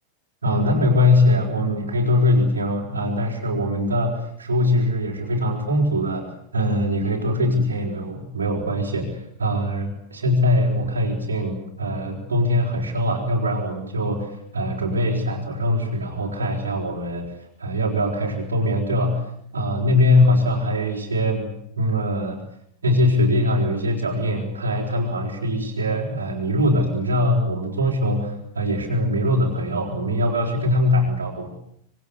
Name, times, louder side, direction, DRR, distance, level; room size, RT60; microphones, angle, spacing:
voice 1, 0.4-17.3 17.6-19.3 19.5-22.4 22.8-31.5, left 1 dB, 75° right, -4 dB, 4.6 m, -22 dB
26.0 x 24.0 x 8.3 m, 0.69 s
figure-of-eight pair, 90°, 0 cm